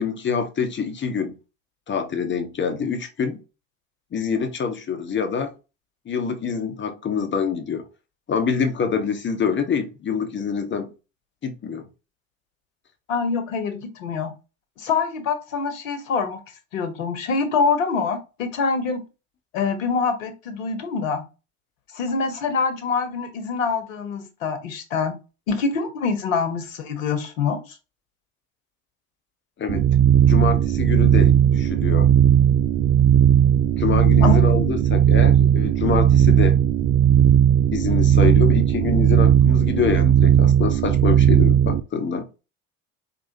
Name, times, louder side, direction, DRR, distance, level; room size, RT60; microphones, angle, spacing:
voice 1, 0.0-1.4 1.9-3.4 4.1-5.5 6.1-7.8 8.3-10.9 11.4-11.9 29.6-29.9 30.3-32.1 33.8-36.6 37.7-42.3, left 6 dB, 25° left, 0.9 m, -25 dB
voice 2, 13.1-14.3 14.8-16.4 16.7-19.0 19.5-21.2 21.9-25.2 25.5-27.6 34.2-34.4, left 5 dB, 70° left, 1.1 m, -25 dB
sound 1, 29.7-41.8, right 9 dB, 25° right, 0.3 m, -16 dB
4.7 x 2.7 x 2.8 m
figure-of-eight pair, 65°, 42 cm